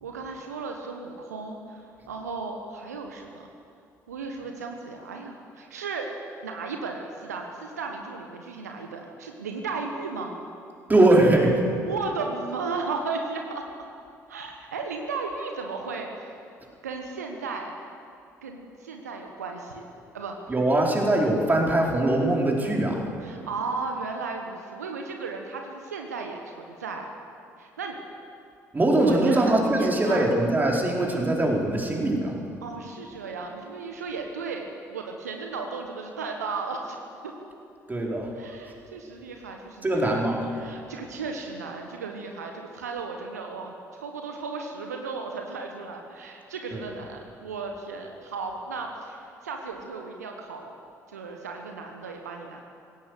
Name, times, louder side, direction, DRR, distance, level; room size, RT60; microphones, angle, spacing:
voice 1, 0.0-3.5 4.1-6.1 6.4-10.4 11.9-13.7 14.3-16.1 16.8-17.7 18.4-19.9 20.1-20.5 23.2-27.1 27.6-28.0 29.0-30.3 32.6-37.0 38.3-40.2 40.5-50.7 51.1-52.6, right 4 dB, 80° right, 3 dB, 1.3 m, -35 dB
voice 2, 10.9-11.6 20.5-23.0 28.7-32.3 37.9-38.3 39.8-40.4 46.7-46.8, right 1 dB, 20° right, -1 dB, 4.5 m, -22 dB
19.5 x 16.5 x 8.2 m, 2.5 s
figure-of-eight pair, 50°, 9 cm